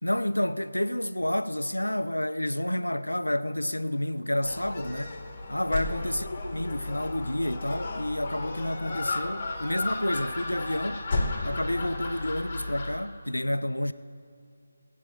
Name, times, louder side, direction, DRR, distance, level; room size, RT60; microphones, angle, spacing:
voice 1, 0.0-5.2 5.5-11.0 11.4-13.9, left 1 dB, 80° left, 0.6 m, -29 dB
Gull seagull, 4.4-13.0, left 2 dB, 30° left, 2.2 m, -33 dB
19.5 x 8.6 x 7.8 m
figure-of-eight pair, 155°, 0 cm